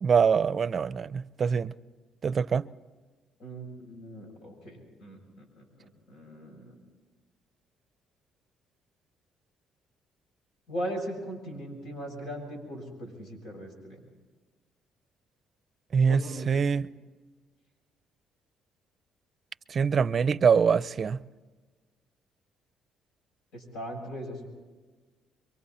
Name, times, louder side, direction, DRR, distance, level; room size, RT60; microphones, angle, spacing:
voice 1, 0.0-1.7 2.2-2.7 15.9-16.9 19.7-21.2, right 6 dB, 45° right, 0.5 m, -24 dB
voice 2, 3.4-5.2 5.6-6.7 10.7-14.1 16.1-16.6 23.5-24.5, equal, 85° left, 6.9 m, -39 dB
26.0 x 23.5 x 4.3 m
cardioid pair, 95°, 0 cm